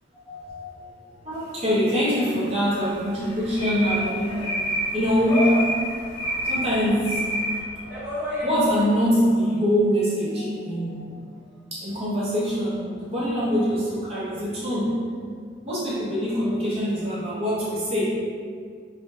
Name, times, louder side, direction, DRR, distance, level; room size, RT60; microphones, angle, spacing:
voice 1, 0.2-0.8 1.1-4.4 4.9-5.7 6.4-7.2 7.6-8.1 8.4-11.1 11.7-15.1 15.6-18.1, equal, 30° right, -9 dB, 0.8 m, -24 dB
sound 1, 1.6-2.3 2.7-7.6, equal, 30° left, 0.8 m, -29 dB
sound 2, 2.8-9.0, equal, 65° right, 1.1 m, -34 dB
3.2 x 2.3 x 2.6 m, 2.1 s
head